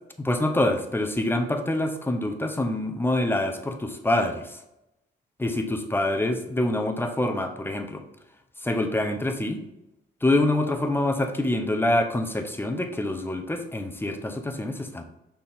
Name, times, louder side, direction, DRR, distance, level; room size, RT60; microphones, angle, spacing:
voice 1, 0.2-4.5 5.4-8.0 8.6-9.6 10.2-15.0, left 1 dB, 10° left, 5 dB, 0.9 m, -26 dB
6.0 x 4.4 x 3.6 m, 0.89 s
cardioid pair, 90°, 20 cm